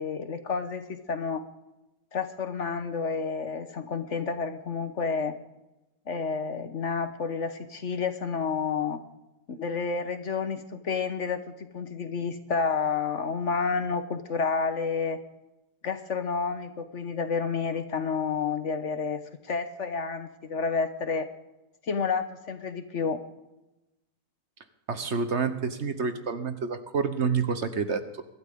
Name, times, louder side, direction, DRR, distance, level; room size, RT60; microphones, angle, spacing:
voice 1, 0.0-1.4 2.1-5.3 6.1-9.0 9.5-15.2 15.8-21.3 21.9-23.2, left 5 dB, 50° left, 9 dB, 1.2 m, -30 dB
voice 2, 24.9-28.2, right 5 dB, 45° right, 10 dB, 1.1 m, -28 dB
23.0 x 12.5 x 3.7 m, 0.97 s
omnidirectional pair, 1.9 m